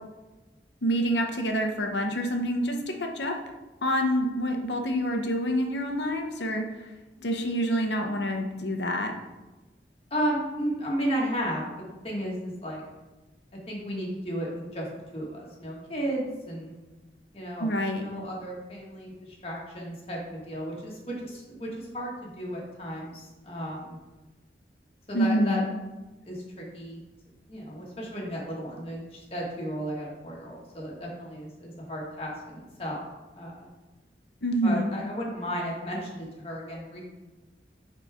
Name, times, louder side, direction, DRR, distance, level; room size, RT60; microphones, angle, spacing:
voice 1, 0.8-2.7 3.0-3.3 3.8-6.8 7.2-9.1 17.6-18.0 25.1-25.6 34.4-34.9, equal, 90° left, 3 dB, 1.1 m, -27 dB
voice 2, 10.1-11.7 12.0-12.8 13.7-14.9 15.1-16.7 17.3-24.0 25.1-25.6 26.3-27.0 27.5-33.0 33.4-33.7 34.6-37.0, equal, 35° left, -3 dB, 1.8 m, -34 dB
9.4 x 4.4 x 3.7 m, 1.1 s
head